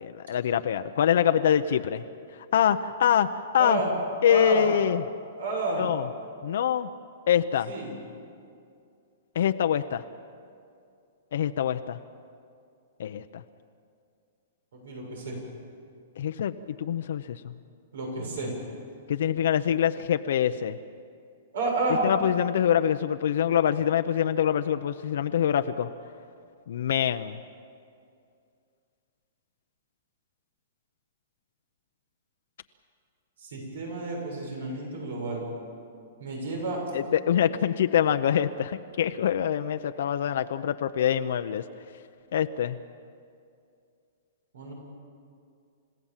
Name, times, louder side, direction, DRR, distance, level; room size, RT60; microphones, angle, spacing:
voice 1, 0.0-2.0 2.5-3.8 4.2-5.1 5.8-6.1 6.4-6.9 7.3-7.7 9.3-10.0 11.3-12.0 13.0-13.4 16.2-17.5 19.1-20.8 22.0-25.9 26.7-27.3 36.9-41.6 42.3-42.8, left 9 dB, 70° left, 8 dB, 0.7 m, -25 dB
voice 2, 3.6-3.9 4.3-4.6 5.4-5.8 7.7-7.9 14.7-15.4 17.9-18.5 21.5-22.0 33.4-35.5 36.2-36.8 44.5-44.7, right 2 dB, 80° right, 0 dB, 7.4 m, -30 dB
29.5 x 16.5 x 7.4 m, 2.4 s
hypercardioid pair, 155°, 0 cm